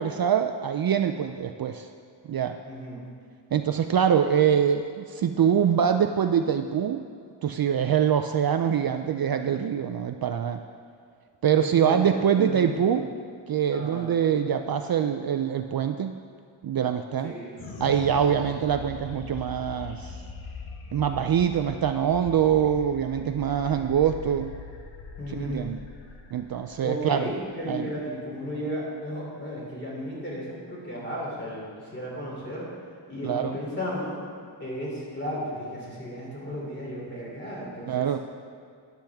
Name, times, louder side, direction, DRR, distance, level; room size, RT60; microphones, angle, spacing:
voice 1, 0.0-1.9 2.3-2.6 3.5-7.0 7.4-10.6 11.4-13.1 13.5-16.2 16.6-17.3 17.8-20.2 20.9-24.5 25.3-25.8 26.3-27.3 27.7-27.9 33.2-33.6 37.9-38.2, right 8 dB, 55° right, 7 dB, 0.5 m, -24 dB
voice 2, 2.6-3.0 11.5-12.9 13.7-14.1 17.2-17.5 25.2-25.7 26.8-32.7 33.1-34.2 34.6-38.1, equal, 25° left, -5 dB, 3.1 m, -34 dB
sound 1, 17.6-28.2, left 4 dB, 80° left, 1.2 m, -42 dB
13.0 x 10.5 x 3.5 m, 2.3 s
wide cardioid pair, 165°, 46 cm